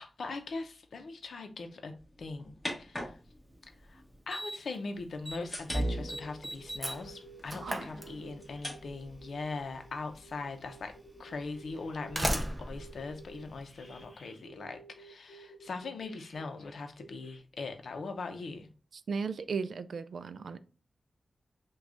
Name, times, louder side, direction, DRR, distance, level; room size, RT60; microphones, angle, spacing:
voice 1, 0.0-3.2 3.8-10.9 11.2-18.7, left 3 dB, 75° left, 0.6 m, -41 dB
sound 1, 2.0-4.2 5.0-14.0, equal, 15° left, 1.4 m, -43 dB
Slam, 3.5-3.6 4.3-4.8 5.0-5.4 5.7-8.6 9.7-9.8 10.7-10.8 11.8-14.1, right 1 dB, 15° right, 0.5 m, -37 dB
sound 2, 6.6-12.2 12.7-17.4, right 3 dB, 40° left, 1.1 m, -54 dB
voice 2, 19.1-20.6, right 5 dB, 80° right, 0.3 m, -35 dB
6.0 x 2.3 x 2.5 m
wide cardioid pair, 165°, 0 cm